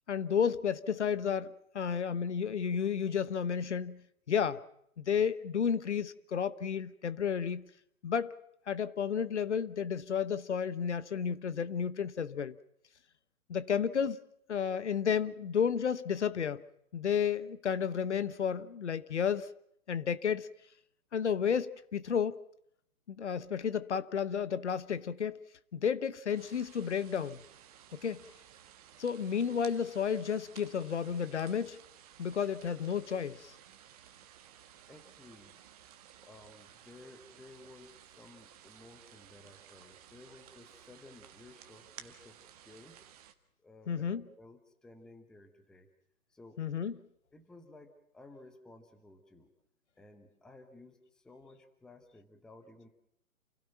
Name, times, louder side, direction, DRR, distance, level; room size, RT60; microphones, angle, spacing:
voice 1, 0.1-4.0 4.3-4.6 5.0-7.7 8.0-8.4 8.7-12.6 13.5-14.2 14.5-16.6 16.9-19.5 19.9-20.5 21.1-22.4 23.1-25.4 25.7-27.4 27.9-28.2 29.0-31.8 32.2-33.5 43.9-44.2 46.6-46.9, left 7 dB, 50° left, 1.1 m, -32 dB
sound 1, 26.3-43.3, right 10 dB, 25° right, 1.4 m, -56 dB
voice 2, 34.9-35.6 36.2-43.1 43.6-45.9 46.3-46.7 47.3-49.5 50.0-52.9, left 2 dB, ahead, 1.0 m, -55 dB
28.5 x 17.0 x 5.8 m
figure-of-eight pair, 135°, 43 cm